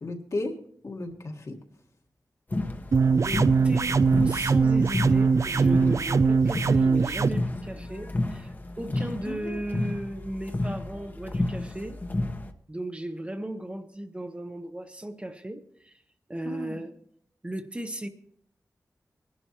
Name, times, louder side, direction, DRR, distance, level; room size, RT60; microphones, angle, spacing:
voice 1, 0.0-0.6 0.8-1.6 8.9-9.6 16.4-16.8, left 2 dB, 55° left, 1 dB, 1.6 m, -35 dB
sound 1, 2.5-12.5, left 2 dB, 30° left, 1.0 m, -32 dB
sound 2, 2.9-7.3, right 5 dB, 55° right, 0.4 m, -21 dB
voice 2, 3.1-4.0 4.2-12.0 12.7-15.9 16.3-16.9 17.4-18.1, right 1 dB, 20° right, 6 dB, 0.8 m, -36 dB
21.5 x 11.5 x 3.0 m, 0.66 s
wide cardioid pair, 105°, 6 cm